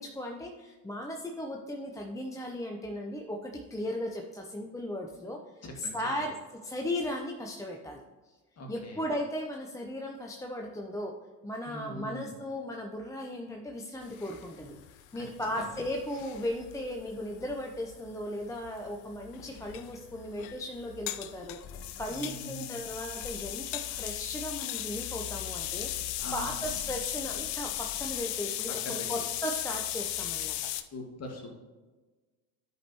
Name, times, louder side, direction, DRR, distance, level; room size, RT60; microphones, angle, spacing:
voice 1, 0.0-5.4 5.8-6.3 6.6-8.0 8.7-11.1 11.4-14.7 15.1-21.6 22.0-30.6, left 1 dB, 5° left, 1 dB, 0.7 m, -36 dB
voice 2, 5.6-6.2 8.6-9.0 11.7-12.3 15.1-15.2 15.6-15.7 22.1-22.8 26.2-26.6 28.7-29.1 30.9-31.5, left 1 dB, 30° left, 1 dB, 2.0 m, -42 dB
sound 1, 14.0-30.8, left 13 dB, 45° left, 0.6 m, -37 dB
12.0 x 5.2 x 3.0 m, 1.3 s
figure-of-eight pair, 70°, 49 cm